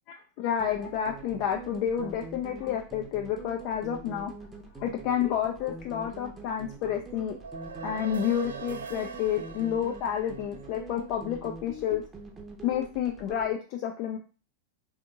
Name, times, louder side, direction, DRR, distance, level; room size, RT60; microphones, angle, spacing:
voice 1, 0.4-4.3 4.8-7.4 7.8-12.0 12.6-14.2, left 9 dB, 45° left, 2 dB, 0.4 m, -30 dB
sound 1, 0.6-13.5, right 2 dB, 10° right, 0.8 m, -44 dB
sound 2, 7.3-11.8, right 6 dB, 65° right, 0.3 m, -43 dB
3.4 x 2.8 x 3.6 m, 0.35 s
figure-of-eight pair, 90°, 0 cm